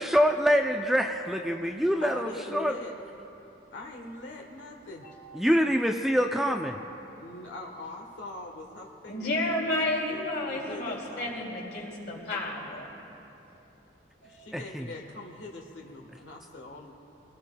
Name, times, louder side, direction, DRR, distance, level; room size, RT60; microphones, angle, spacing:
voice 1, 0.0-2.7 5.3-6.8 14.5-14.9, equal, ahead, 3 dB, 0.4 m, -25 dB
voice 2, 2.0-3.0 3.7-5.1 7.2-11.5 14.2-16.9, left 2 dB, 80° left, 1 dB, 1.3 m, -43 dB
voice 3, 8.8-12.9 14.2-14.5, left 1 dB, 55° left, -3 dB, 2.8 m, -32 dB
23.5 x 17.5 x 2.3 m, 2.9 s
head